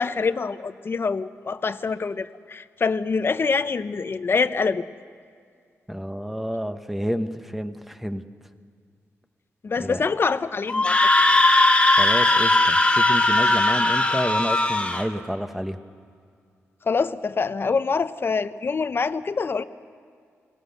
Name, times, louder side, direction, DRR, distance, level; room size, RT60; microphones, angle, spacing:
voice 1, 0.0-4.9 9.6-11.0 16.9-19.6, left 4 dB, 45° left, 12 dB, 0.8 m, -25 dB
voice 2, 5.9-8.2 9.8-10.0 11.9-15.8, equal, 5° right, 8 dB, 1.2 m, -29 dB
Screaming, 10.7-15.1, left 2 dB, 20° left, 2.0 m, -19 dB
23.0 x 18.5 x 6.7 m, 2.2 s
cardioid pair, 70°, 5 cm